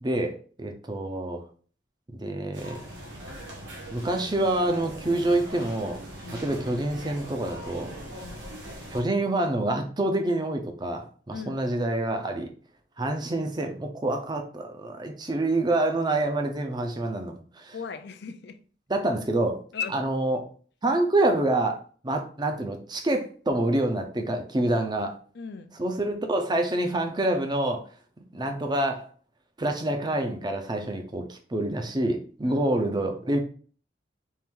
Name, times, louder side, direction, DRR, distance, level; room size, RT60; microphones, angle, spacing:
voice 1, 0.0-1.4 2.2-2.8 3.9-6.0 6.4-7.9 8.9-12.5 13.0-17.7 18.9-19.6 19.9-20.4 20.8-21.8 22.0-25.2 25.8-27.8 28.3-29.1 29.6-33.4, right 1 dB, 25° right, 0.6 m, -27 dB
sound 1, 2.5-9.0, equal, 70° right, 1.2 m, -41 dB
voice 2, 11.3-11.6 17.7-18.6 19.7-20.0 25.3-25.8 32.4-32.6, left 5 dB, 60° left, 0.5 m, -37 dB
4.5 x 2.5 x 3.6 m
head